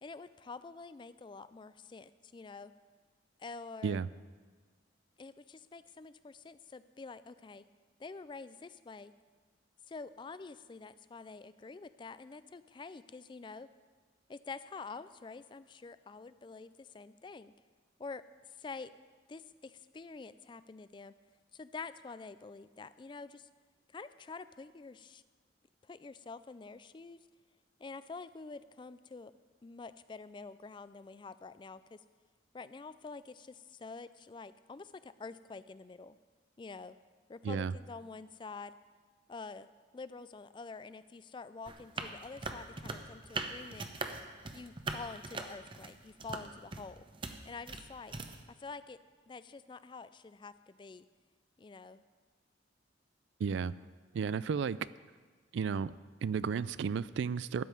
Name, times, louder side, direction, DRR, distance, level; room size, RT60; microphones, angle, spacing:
voice 1, 0.0-2.7 3.4-4.0 5.2-7.6 8.0-9.1 9.9-13.7 14.3-17.5 18.0-18.9 19.3-21.1 21.5-23.5 23.9-25.2 25.8-27.2 27.8-29.3 29.6-32.0 32.5-36.2 36.6-37.0 37.3-38.7 39.3-39.7 39.9-43.9 44.5-47.0 47.4-48.1 48.5-49.0 49.3-51.1 51.6-52.0, left 4 dB, 25° left, 14 dB, 0.3 m, -47 dB
sound 1, 41.7-48.4, right 3 dB, 25° right, 0.7 m, -41 dB
voice 2, 53.4-53.7 54.1-54.8 55.5-55.9 56.2-57.6, right 6 dB, 70° right, 18 dB, 0.3 m, -33 dB
13.0 x 5.5 x 9.2 m, 1.5 s
head